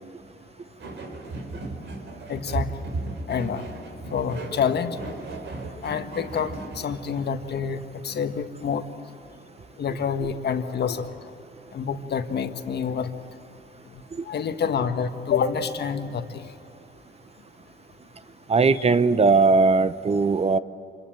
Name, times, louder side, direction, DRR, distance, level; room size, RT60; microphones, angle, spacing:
sound 1, 0.8-7.3, right 2 dB, 65° right, 4.3 m, -35 dB
voice 1, 2.3-2.7 3.3-3.8 4.1-5.0 5.8-8.8 9.8-11.1 11.7-13.1 13.9-16.5 18.7-18.8, left 7 dB, 55° left, 8 dB, 1.5 m, -28 dB
voice 2, 18.5-20.6, right 4 dB, 30° right, 14 dB, 0.7 m, -19 dB
26.5 x 22.5 x 8.9 m, 2.8 s
cardioid pair, 90°, 20 cm